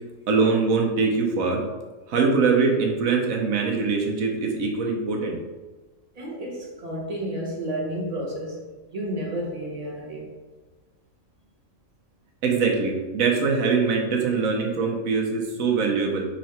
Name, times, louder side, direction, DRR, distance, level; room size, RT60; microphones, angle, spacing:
voice 1, 0.3-1.6 2.1-5.4 12.4-16.3, right 4 dB, 80° right, 0 dB, 1.2 m, -23 dB
voice 2, 6.1-8.6 8.9-10.3, right 1 dB, 35° right, -3 dB, 0.7 m, -31 dB
3.8 x 3.3 x 4.3 m, 1.3 s
omnidirectional pair, 1.4 m